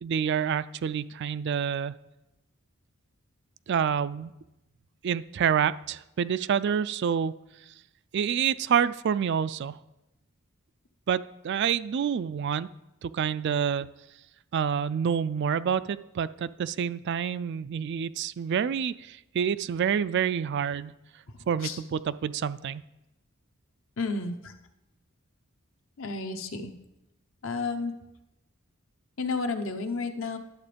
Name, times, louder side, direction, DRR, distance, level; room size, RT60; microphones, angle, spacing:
voice 1, 0.0-1.9 3.7-4.3 5.0-7.3 8.1-9.7 11.1-12.7 13.0-13.9 14.5-20.9 21.5-22.8, right 7 dB, 50° right, 15 dB, 0.3 m, -27 dB
voice 2, 24.0-24.5 26.0-26.7 27.4-27.9 29.2-30.4, left 4 dB, 60° left, 6 dB, 0.9 m, -31 dB
11.0 x 7.5 x 5.1 m, 0.92 s
head